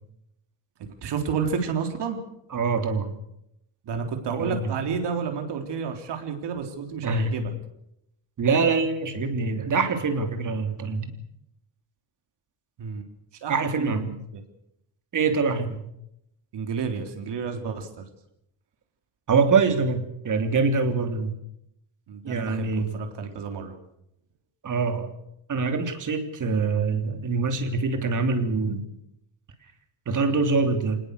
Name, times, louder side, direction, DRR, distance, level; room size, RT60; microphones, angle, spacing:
voice 1, 1.0-2.2 3.8-7.5 12.8-13.1 13.4-14.2 16.5-18.1 22.1-23.7, right 6 dB, 65° right, 5 dB, 3.9 m, -30 dB
voice 2, 2.5-3.1 4.4-4.7 7.0-7.3 8.4-11.1 13.5-14.1 15.1-15.8 19.3-21.4 22.2-23.0 24.6-25.1 25.5-28.8 30.1-31.0, right 4 dB, 40° right, 7 dB, 3.2 m, -24 dB
25.0 x 20.0 x 6.8 m, 0.79 s
cardioid pair, 135°, 45 cm